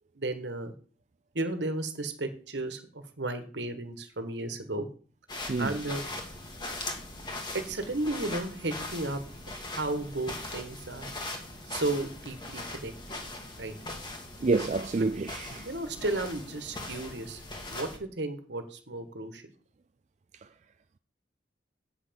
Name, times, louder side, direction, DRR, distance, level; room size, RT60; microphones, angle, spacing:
voice 1, 0.1-0.7 1.3-4.9 5.6-6.0 7.5-9.2 9.7-11.1 11.7-12.9 13.6-13.7 15.6-17.4 17.7-19.4, right 2 dB, 70° right, 1.5 m, -33 dB
sound 1, 5.3-18.0, left 2 dB, 25° left, 1.7 m, -40 dB
voice 2, 14.4-15.7, right 3 dB, 40° right, 0.4 m, -28 dB
8.1 x 5.9 x 7.0 m
head